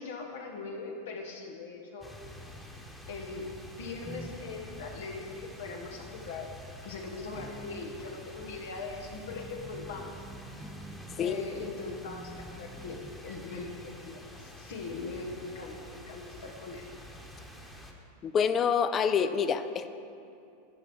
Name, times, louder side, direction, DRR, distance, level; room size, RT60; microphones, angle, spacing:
voice 1, 0.0-2.1 3.1-6.5 6.8-10.8 11.2-16.9, left 3 dB, 75° left, 1 dB, 1.2 m, -41 dB
sound 1, 2.0-17.9, left 1 dB, 5° left, 1.2 m, -48 dB
bass guitar drums, 4.0-4.9 5.9-6.2 6.7-13.1, right 2 dB, 10° right, 0.7 m, -48 dB
voice 2, 18.2-19.9, left 7 dB, 30° left, 11 dB, 0.4 m, -27 dB
10.5 x 4.6 x 6.1 m, 2.6 s
hypercardioid pair, 100°, 0 cm